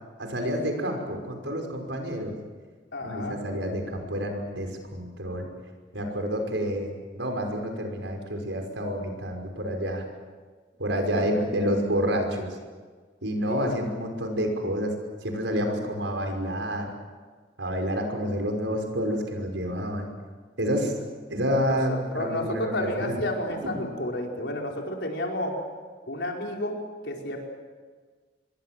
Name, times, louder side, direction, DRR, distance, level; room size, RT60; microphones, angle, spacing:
voice 1, 0.2-2.4 3.0-5.5 5.9-10.0 10.8-12.6 13.2-14.9 15.2-16.9 17.6-20.1 20.6-20.9 21.3-23.2 23.7-23.8, equal, 85° right, 3 dB, 5.7 m, -29 dB
voice 2, 2.9-3.4 11.1-11.2 13.4-13.8 20.6-20.9 21.7-25.5 26.1-26.8 27.0-27.4, left 1 dB, 70° left, 0 dB, 5.0 m, -31 dB
26.5 x 22.5 x 7.7 m, 1.5 s
head